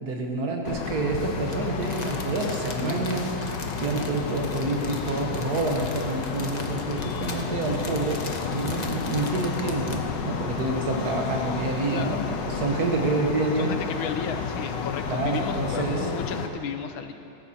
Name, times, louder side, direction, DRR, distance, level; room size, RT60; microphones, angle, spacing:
voice 1, 0.0-12.2 12.4-13.7 15.1-16.1, right 3 dB, 55° right, 1 dB, 1.6 m, -28 dB
sound 1, 0.6-16.5, left 6 dB, 70° left, 1.4 m, -31 dB
Crumpling crinkling, 1.5-10.1 10.6-10.7, left 3 dB, 45° left, 0.5 m, -40 dB
voice 2, 11.9-12.2 13.6-17.1, left 7 dB, 85° left, 7 dB, 1.5 m, -34 dB
17.0 x 15.0 x 2.8 m, 2.9 s
omnidirectional pair, 2.2 m